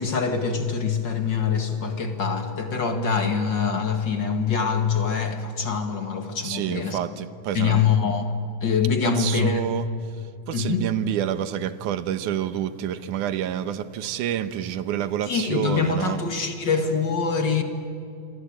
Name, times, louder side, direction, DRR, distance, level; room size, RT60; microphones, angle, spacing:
voice 1, 0.0-7.0 7.5-8.2 8.6-9.6 10.5-10.8 15.3-17.6, left 6 dB, 40° left, 6 dB, 2.2 m, -24 dB
voice 2, 6.4-7.8 9.0-9.9 10.5-16.2, right 10 dB, 90° right, 13 dB, 2.6 m, -28 dB
27.5 x 24.0 x 8.8 m, 2.5 s
omnidirectional pair, 3.5 m